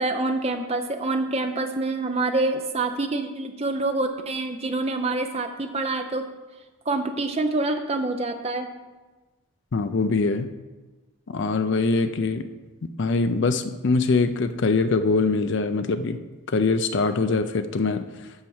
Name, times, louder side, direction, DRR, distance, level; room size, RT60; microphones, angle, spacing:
voice 1, 0.0-6.3 6.9-8.7, right 2 dB, 30° right, 6 dB, 0.7 m, -26 dB
voice 2, 9.7-10.5 11.3-12.5 12.8-16.2 16.5-18.1, left 3 dB, 55° left, 9 dB, 0.4 m, -23 dB
8.7 x 4.5 x 7.2 m, 1.2 s
head